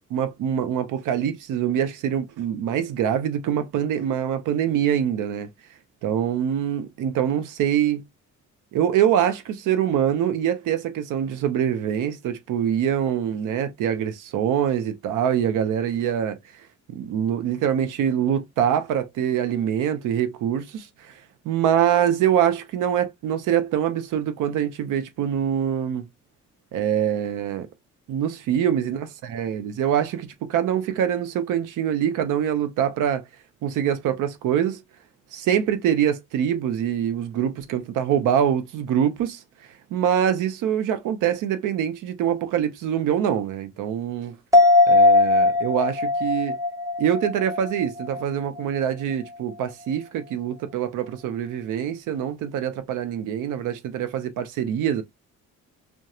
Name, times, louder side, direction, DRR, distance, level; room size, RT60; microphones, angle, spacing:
voice 1, 0.1-5.5 6.0-8.0 8.7-16.4 16.9-21.1 21.4-26.1 26.7-27.7 28.1-33.2 33.6-34.8 35.3-39.4 39.9-44.4 44.9-46.6 47.0-55.0, right 9 dB, 85° right, 0.6 m, -24 dB
sound 1, 44.5-48.2 48.6-48.7, left 2 dB, 10° right, 0.7 m, -19 dB
2.9 x 2.2 x 2.3 m
cardioid pair, 90°, 30 cm